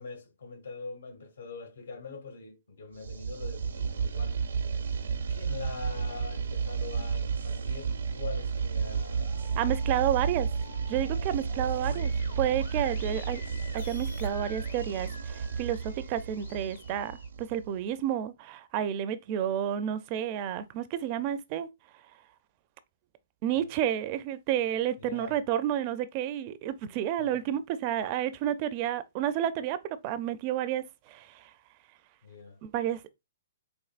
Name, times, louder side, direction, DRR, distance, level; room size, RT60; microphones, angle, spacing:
voice 1, 0.0-4.4 5.2-9.5 10.1-10.2 11.2-12.1 23.5-23.7 25.0-25.4 27.2-27.6 32.2-32.6, left 4 dB, 85° left, 1.7 m, -44 dB
sound 1, 3.0-17.8, right 5 dB, 85° right, 0.7 m, -32 dB
sound 2, 8.9-17.3, left 3 dB, 60° left, 0.9 m, -50 dB
voice 2, 9.6-10.5 10.9-12.1 12.4-13.4 13.7-21.7 23.4-29.8 30.0-31.5 32.6-33.1, right 11 dB, 35° right, 0.4 m, -30 dB
4.4 x 3.0 x 2.4 m
hypercardioid pair, 150°, 0 cm